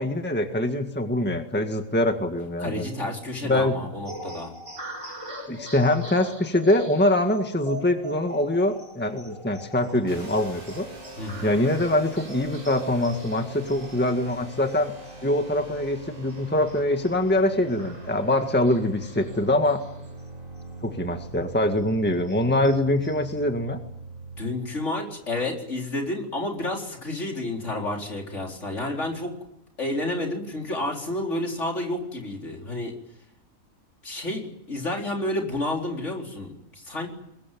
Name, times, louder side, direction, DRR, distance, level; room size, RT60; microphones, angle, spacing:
voice 1, 0.0-2.8 3.4-3.8 5.5-10.9 11.4-14.9 15.2-19.8 20.8-23.8, left 1 dB, 5° left, 5 dB, 1.7 m, -24 dB
voice 2, 2.6-4.5 11.2-11.6 24.4-29.4 29.8-32.9 34.0-37.1, left 1 dB, 55° left, 1 dB, 4.5 m, -30 dB
sound 1, 4.1-21.0 21.3-21.4 21.8-23.4, right 2 dB, 20° right, 5.1 m, -43 dB
sound 2, 10.1-24.4, right 2 dB, 40° right, 4.8 m, -42 dB
22.5 x 22.0 x 9.3 m, 0.80 s
omnidirectional pair, 1.5 m